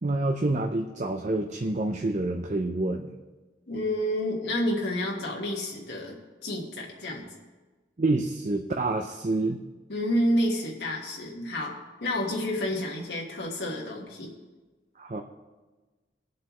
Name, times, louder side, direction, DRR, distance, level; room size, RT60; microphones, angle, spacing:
voice 1, 0.0-3.1 8.0-9.6 15.0-15.2, right 2 dB, 40° right, 3 dB, 0.6 m, -27 dB
voice 2, 3.7-7.2 9.9-14.3, left 1 dB, 70° left, -2 dB, 1.5 m, -29 dB
20.5 x 7.7 x 3.1 m, 1.2 s
head